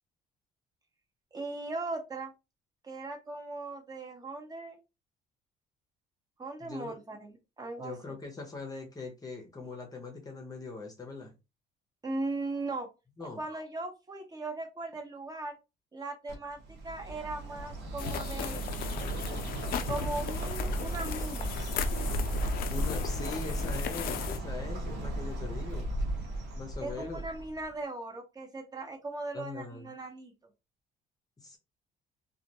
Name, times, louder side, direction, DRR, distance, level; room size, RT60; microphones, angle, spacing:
voice 1, 1.3-2.3 2.8-4.8 6.4-8.1 12.0-12.9 13.4-15.6 15.9-18.6 19.9-21.5 26.8-30.3, right 2 dB, 20° right, 0.8 m, -38 dB
voice 2, 6.6-7.0 7.8-11.3 13.2-13.4 22.7-25.9 26.6-27.2 29.3-29.9 31.4-31.6, left 3 dB, 20° left, 0.7 m, -41 dB
Bird, 16.3-27.7, right 1 dB, 80° right, 0.9 m, -35 dB
sound 1, 18.0-24.4, left 8 dB, 60° left, 0.4 m, -37 dB
2.3 x 2.1 x 2.7 m
cardioid pair, 110°, 17 cm